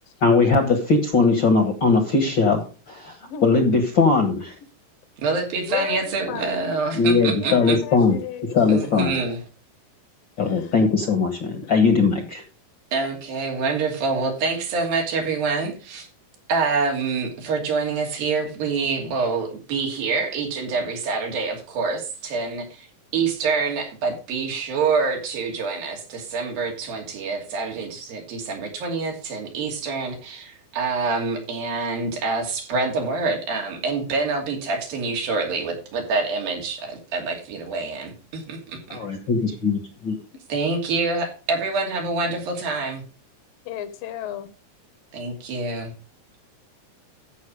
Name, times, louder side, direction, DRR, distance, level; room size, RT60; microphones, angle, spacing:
voice 1, 0.2-3.1 3.4-4.5 6.9-8.2 8.5-9.1 10.4-12.4 38.9-40.2, left 4 dB, 55° left, 5 dB, 1.3 m, -20 dB
voice 2, 3.2-3.6 5.7-6.7 7.4-8.9 10.4-11.0 43.7-44.5, left 11 dB, 75° left, 12 dB, 2.6 m, -34 dB
voice 3, 5.2-7.8 8.7-9.4 12.9-16.1 16.5-22.9 23.1-39.0 40.5-43.0 45.1-45.9, right 4 dB, 85° right, 1 dB, 4.6 m, -26 dB
14.0 x 5.8 x 4.9 m, 0.35 s
omnidirectional pair, 4.0 m